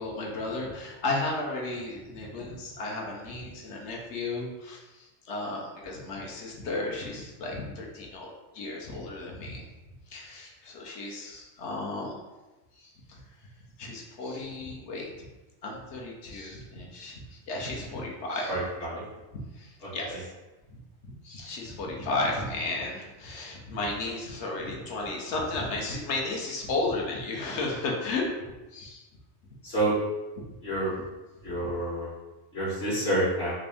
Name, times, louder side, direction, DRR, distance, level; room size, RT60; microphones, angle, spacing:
voice 1, 0.0-9.6 10.1-12.2 12.8-13.2 13.8-15.3 15.6-18.6 19.5-20.3 20.7-28.2 28.7-29.0, left 2 dB, 70° left, -1 dB, 1.0 m, -34 dB
voice 2, 18.5-19.0 19.8-19.9 29.6-29.9 30.6-30.9 31.4-32.1 32.5-33.5, right 1 dB, 50° left, -9 dB, 1.2 m, -28 dB
3.5 x 2.5 x 3.4 m, 1.1 s
omnidirectional pair, 1.3 m